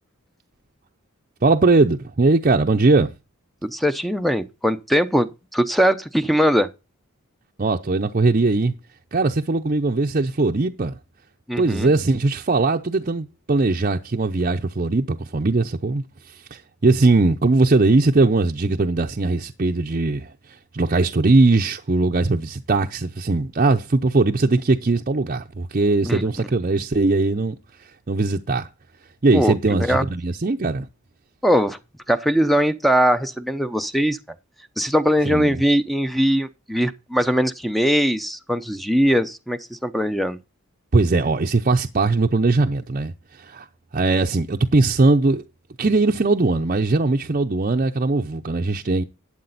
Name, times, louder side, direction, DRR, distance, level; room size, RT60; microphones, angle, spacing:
voice 1, 1.4-3.1 7.6-8.7 9.1-11.0 11.6-28.7 29.2-30.9 35.3-35.6 40.9-43.7 43.9-45.4 45.8-49.0, right 3 dB, 40° right, 0.6 m, -20 dB
voice 2, 3.6-6.7 11.5-11.9 26.0-26.2 29.3-30.1 31.4-31.8 32.1-34.2 34.8-40.4, equal, ahead, 0.6 m, -21 dB
12.0 x 8.7 x 4.0 m
head